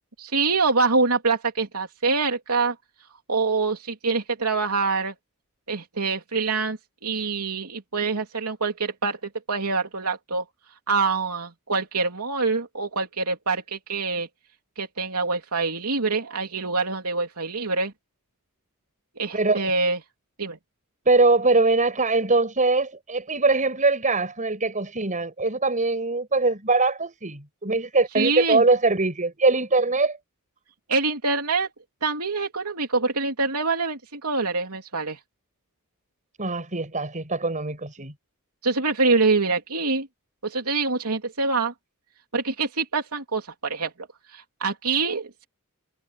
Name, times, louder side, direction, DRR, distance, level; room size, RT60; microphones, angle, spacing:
voice 1, 0.2-2.7 3.3-5.1 5.7-9.2 9.5-10.4 10.9-14.3 14.8-17.9 19.2-20.0 20.4-20.6 28.1-28.6 30.9-31.7 32.0-35.2 38.6-40.1 40.4-41.7 42.3-43.9 44.3-45.5, right 4 dB, 85° right, 3.1 m, -25 dB
voice 2, 21.1-30.2 36.4-38.1, right 3 dB, 35° right, 6.0 m, -22 dB
head